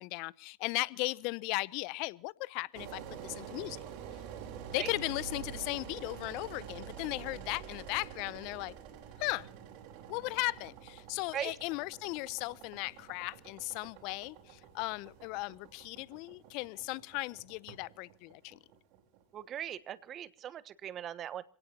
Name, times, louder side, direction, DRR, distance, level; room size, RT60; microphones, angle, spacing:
voice 1, 0.0-3.8 4.7-8.7 9.2-9.5 10.1-18.6, left 24 dB, 60° left, 22 dB, 0.7 m, -37 dB
Engine, 2.7-19.6, right 8 dB, 60° right, 3.9 m, -48 dB
voice 2, 19.3-21.4, right 10 dB, 40° right, 15 dB, 1.2 m, -39 dB
27.5 x 18.0 x 2.9 m, 0.41 s
hypercardioid pair, 85°, 0 cm